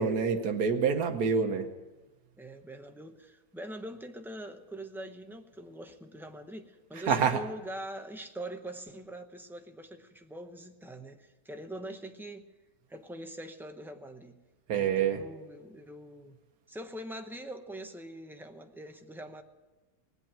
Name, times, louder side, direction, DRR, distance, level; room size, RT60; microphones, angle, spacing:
voice 1, 0.0-1.7 6.9-7.5 14.7-15.2, right 6 dB, 80° right, 3 dB, 1.4 m, -27 dB
voice 2, 2.4-12.5 12.9-14.4 14.7-16.4 16.7-19.4, right 1 dB, ahead, 5 dB, 0.5 m, -43 dB
19.5 x 8.2 x 8.7 m, 1.2 s
omnidirectional pair, 1.6 m